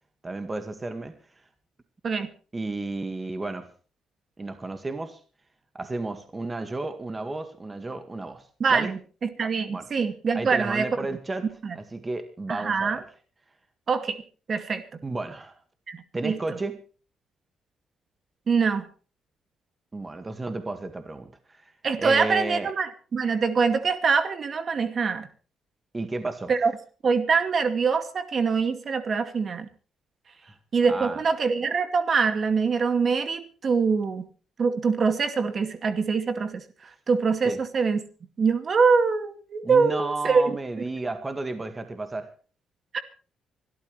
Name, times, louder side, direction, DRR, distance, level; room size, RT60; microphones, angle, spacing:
voice 1, 0.2-1.1 2.5-3.7 4.4-5.2 5.7-8.9 9.7-9.9 10.3-13.0 15.0-15.6 16.1-16.8 19.9-21.7 22.0-22.7 25.9-26.5 30.4-30.5 30.9-31.2 37.4-37.6 39.6-42.3, right 2 dB, 25° right, 2.0 m, -33 dB
voice 2, 8.6-10.9 11.6-11.8 12.5-13.0 13.9-14.2 14.5-14.8 15.9-16.4 18.5-18.9 21.8-25.3 26.5-26.7 27.0-29.7 30.7-34.2 34.6-38.0 38.4-40.4 42.9-43.0, right 5 dB, 45° right, 2.3 m, -24 dB
25.0 x 13.0 x 3.3 m
cardioid pair, 90°, 0 cm